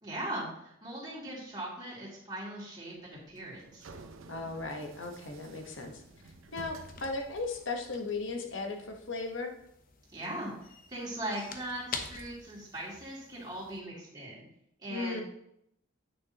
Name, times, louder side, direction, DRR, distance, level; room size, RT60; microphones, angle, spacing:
voice 1, 0.0-3.9 10.1-10.5 10.9-14.4 14.8-15.2, right 1 dB, 20° right, -6 dB, 2.7 m, -39 dB
sound 1, 3.1-8.1, right 3 dB, 80° right, 0.7 m, -52 dB
voice 2, 4.3-6.0 6.5-9.5 14.9-15.2, left 3 dB, 65° left, 3 dB, 1.1 m, -36 dB
sound 2, 4.8-13.8, left 5 dB, 45° left, 0.8 m, -48 dB
8.9 x 6.7 x 2.9 m, 0.73 s
head